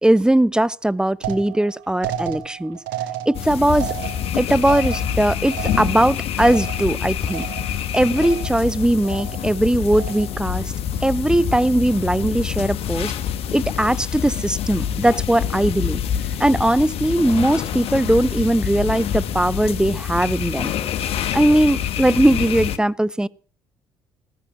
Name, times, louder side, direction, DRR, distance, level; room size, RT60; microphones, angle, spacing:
voice 1, 0.0-2.8 3.3-3.9 4.4-7.5 7.9-10.7 11.0-13.1 13.5-16.0 16.4-20.7 21.3-23.3, right 1 dB, 5° right, 0.9 m, -19 dB
sound 1, 1.2-7.0 7.3-7.8 8.2-8.7 9.0-9.6 9.9-10.5, right 11 dB, 80° right, 1.9 m, -33 dB
sound 2, 3.3-22.8, left 9 dB, 60° left, 1.5 m, -26 dB
sound 3, 9.5-18.9, left 3 dB, 40° left, 7.8 m, -43 dB
16.0 x 13.5 x 6.0 m
hypercardioid pair, 55°, 11 cm